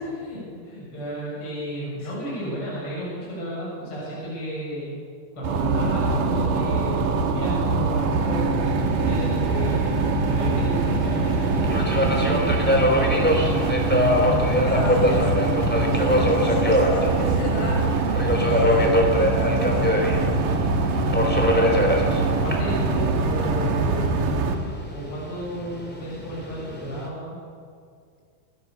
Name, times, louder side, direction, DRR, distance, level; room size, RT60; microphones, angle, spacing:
voice 1, 0.2-4.9 5.3-9.9 10.2-13.5 22.4-24.3 24.9-27.4, equal, 25° left, -6 dB, 8.1 m, -33 dB
sound 1, 5.4-24.6, right 3 dB, 55° right, 2.6 m, -23 dB
Subway metro underground, 8.6-27.1, left 1 dB, 5° left, 1.6 m, -25 dB
voice 2, 14.6-15.4 15.8-18.2 18.5-20.4, left 1 dB, 90° left, 1 dB, 8.2 m, -32 dB
29.0 x 15.0 x 6.9 m, 2.2 s
omnidirectional pair, 5.6 m